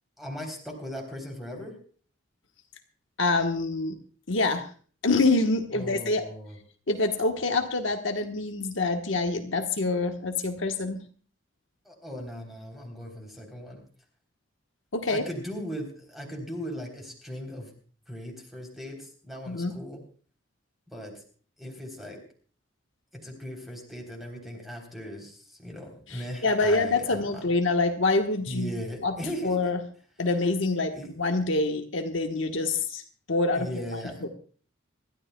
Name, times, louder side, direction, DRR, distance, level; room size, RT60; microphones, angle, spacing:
voice 1, 0.2-1.8 5.7-6.6 11.9-13.8 15.1-17.7 18.1-20.0 20.9-21.1 21.6-22.2 23.1-27.4 28.5-29.5 30.9-31.1 33.5-34.2, equal, ahead, 1 dB, 3.5 m, -38 dB
voice 2, 3.2-4.0 4.3-4.7 5.0-6.3 6.9-11.0 14.9-15.2 19.5-19.8 26.1-28.7 29.0-29.1 29.4-29.8 30.2-33.0 33.3-33.7 33.9-34.3, left 3 dB, 65° left, 4 dB, 1.2 m, -26 dB
26.0 x 13.0 x 2.2 m, 0.43 s
head